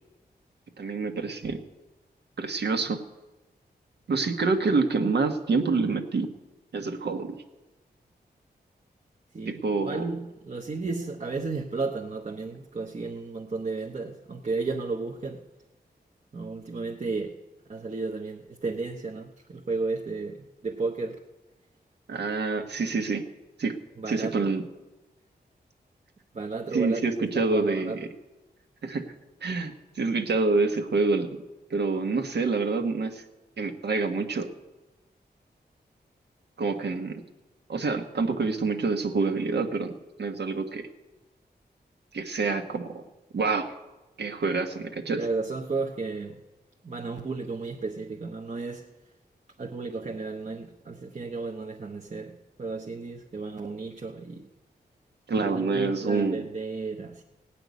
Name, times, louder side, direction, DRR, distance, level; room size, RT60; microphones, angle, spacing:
voice 1, 0.8-1.6 2.4-3.0 4.1-6.3 6.7-7.3 9.5-10.0 22.1-23.2 23.6-23.8 24.1-24.6 26.7-28.1 28.8-29.1 29.4-31.3 31.7-33.2 33.6-34.5 36.6-37.2 37.7-39.9 40.2-40.9 42.1-43.0 43.3-43.7 44.2-45.2 55.3-56.4, right 4 dB, 75° right, 5 dB, 1.5 m, -27 dB
voice 2, 9.3-15.4 16.3-17.4 17.7-21.2 24.0-24.6 26.3-28.0 45.2-46.4 46.8-48.9 49.6-54.5 55.4-57.2, right 3 dB, 40° right, 1 dB, 1.0 m, -33 dB
17.5 x 5.9 x 9.5 m, 1.1 s
wide cardioid pair, 95°, 17 cm